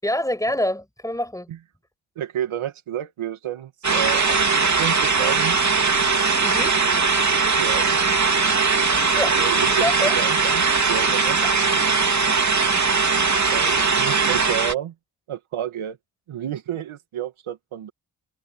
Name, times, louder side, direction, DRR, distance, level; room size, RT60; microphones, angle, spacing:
voice 1, 0.0-1.5 6.4-6.8 9.1-9.4 9.8-10.1, left 1 dB, 5° left, 7.9 m, -25 dB
voice 2, 2.2-4.4 4.8-5.6 7.6-7.9 9.1-11.4 13.5-14.9 15.3-16.0 16.3-17.9, right 10 dB, 80° right, 2.5 m, -30 dB
sound 1, 3.8-14.7, right 4 dB, 35° right, 3.0 m, -20 dB
cardioid pair, 70°, 48 cm